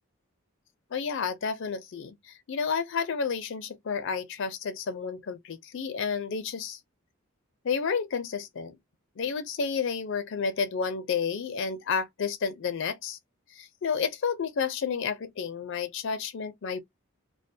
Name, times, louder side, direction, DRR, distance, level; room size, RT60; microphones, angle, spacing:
voice 1, 0.9-6.8 7.6-8.7 9.2-13.2 13.5-16.8, left 6 dB, 60° left, 0.4 m, -31 dB
2.3 x 2.2 x 2.6 m
head